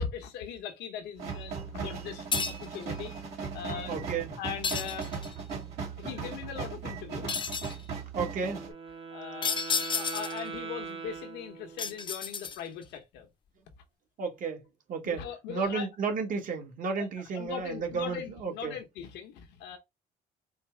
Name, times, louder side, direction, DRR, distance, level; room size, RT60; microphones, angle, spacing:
voice 1, 0.0-3.1 3.5-4.1 4.4-5.6 6.0-7.3 9.1-9.6 9.9-13.3 15.0-15.9 17.0-17.1 17.3-19.8, left 7 dB, 85° left, 1.0 m, -40 dB
sound 1, 1.2-8.7, right 5 dB, 75° right, 2.3 m, -38 dB
sound 2, 2.3-2.8 4.6-5.4 7.3-7.8 9.4-10.5 11.8-12.8, left 6 dB, 30° left, 0.5 m, -32 dB
voice 2, 3.9-4.3 8.1-8.6 14.2-15.2 15.5-18.8, right 5 dB, 50° right, 1.2 m, -33 dB
Wind instrument woodwind instrument, 8.4-12.1, right 5 dB, 30° right, 0.8 m, -41 dB
4.4 x 2.0 x 4.4 m
cardioid pair, 110°, 17 cm